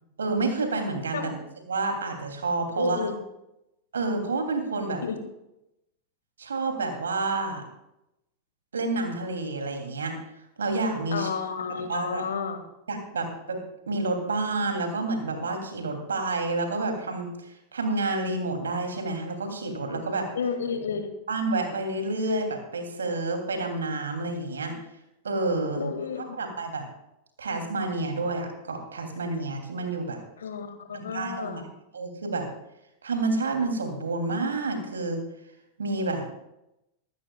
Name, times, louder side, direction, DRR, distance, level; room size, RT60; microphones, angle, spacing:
voice 1, 0.2-1.3 1.7-3.1 3.9-5.0 6.4-7.6 8.7-10.2 10.6-11.3 11.7-12.2 12.9-13.6 13.9-20.3 21.3-24.7 25.2-25.9 26.4-26.8 27.4-30.2 30.9-31.5 31.9-32.5 33.0-35.2 35.8-36.2, right 3 dB, 70° right, 4 dB, 2.8 m, -29 dB
voice 2, 2.8-3.2 5.0-5.2 11.1-12.6 20.4-21.1 25.7-26.4 30.4-31.6, left 6 dB, 65° left, 7 dB, 1.9 m, -31 dB
24.5 x 12.5 x 2.3 m, 0.87 s
figure-of-eight pair, 90°, 0 cm